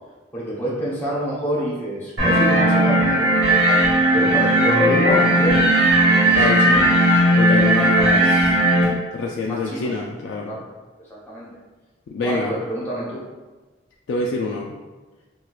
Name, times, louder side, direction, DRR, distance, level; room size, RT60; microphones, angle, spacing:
voice 1, 0.3-3.8 4.1-6.8 9.4-9.9 10.5-10.6 11.1-11.5 12.2-13.2, right 1 dB, 10° left, -7 dB, 0.8 m, -27 dB
sound 1, 2.2-8.8, right 1 dB, 55° right, 1.4 m, -16 dB
voice 2, 6.4-6.8 7.4-8.5 9.1-10.6 12.1-12.5 14.1-14.8, left 3 dB, 75° left, -2 dB, 0.3 m, -26 dB
4.3 x 2.3 x 2.3 m, 1.3 s
head